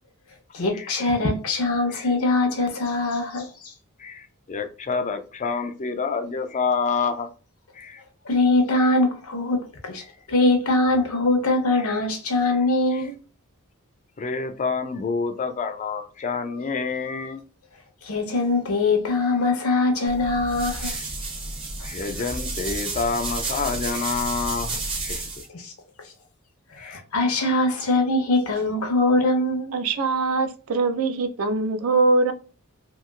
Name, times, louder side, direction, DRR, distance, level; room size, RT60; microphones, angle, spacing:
voice 1, 0.5-3.7 8.3-10.0 10.3-13.2 18.0-21.0 25.5-25.7 26.7-29.7, left 2 dB, 70° left, 0.7 m, -22 dB
voice 2, 4.0-7.3 7.8-8.0 11.8-11.9 14.2-17.4 19.6-19.8 20.8-21.0 21.8-25.2 26.8-27.0, left 5 dB, 30° left, 0.3 m, -28 dB
sound 1, 20.1-25.5, right 3 dB, 25° right, 0.7 m, -31 dB
voice 3, 29.7-32.3, right 3 dB, 70° right, 0.5 m, -22 dB
2.8 x 2.8 x 2.3 m
head